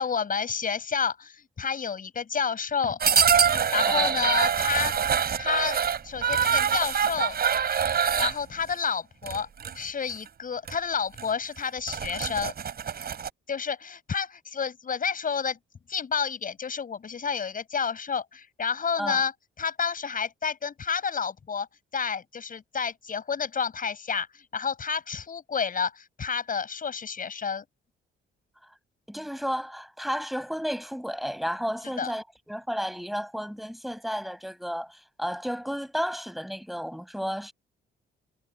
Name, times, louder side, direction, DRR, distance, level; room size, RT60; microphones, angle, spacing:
voice 1, 0.0-3.0 3.5-7.4 8.2-9.5 9.7-12.5 13.5-15.6 15.9-19.3 19.6-21.7 21.9-27.6 32.0-32.1, left 6 dB, 45° left, 7.8 m, -30 dB
sound 1, 3.0-8.4 9.2-9.7 10.1-10.3 10.7-10.8 11.2-11.3 11.7-13.3, right 7 dB, 50° right, 7.7 m, -25 dB
voice 2, 29.1-37.5, equal, ahead, 7.1 m, -32 dB
cardioid pair, 90°, 20 cm